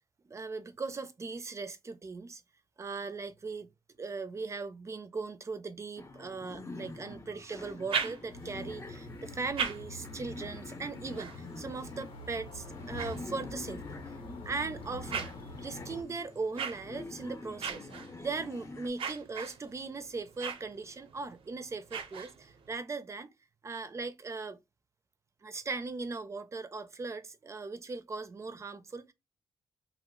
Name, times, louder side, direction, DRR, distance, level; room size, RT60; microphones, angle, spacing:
voice 1, 0.3-2.4 2.8-3.7 4.0-13.9 14.4-17.9 18.2-23.3 23.6-24.6 25.4-29.1, right 4 dB, 30° right, 0.5 m, -39 dB
sound 1, 6.0-18.9, left 2 dB, 30° left, 0.7 m, -46 dB
sound 2, 7.6-8.6 9.2-13.8 14.4-22.7, right 6 dB, 80° right, 0.6 m, -41 dB
sound 3, 8.3-16.0, left 2 dB, 85° left, 0.8 m, -47 dB
2.9 x 2.0 x 3.6 m
cardioid pair, 95°, 9 cm